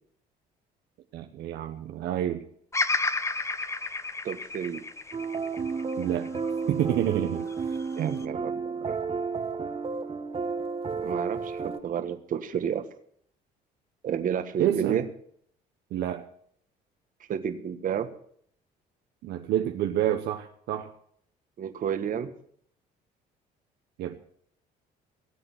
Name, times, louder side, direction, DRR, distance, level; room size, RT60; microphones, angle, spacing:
voice 1, 1.1-2.4 6.0-6.3 6.7-7.5 8.0-8.2 14.6-15.0 15.9-16.2 19.2-20.9 24.0-24.2, right 11 dB, 75° right, 5 dB, 1.1 m, -28 dB
Bird vocalization bird call bird song, 2.7-7.0 7.5-8.3, left 3 dB, 15° left, 0.9 m, -31 dB
voice 2, 4.2-4.8 8.0-9.0 10.9-12.9 14.0-15.0 17.3-18.1 21.6-22.3, right 8 dB, 55° right, 9 dB, 1.5 m, -31 dB
sound 1, 5.1-11.8, right 5 dB, 35° right, 1.4 m, -32 dB
18.0 x 7.9 x 7.6 m, 0.63 s
cardioid pair, 110°, 17 cm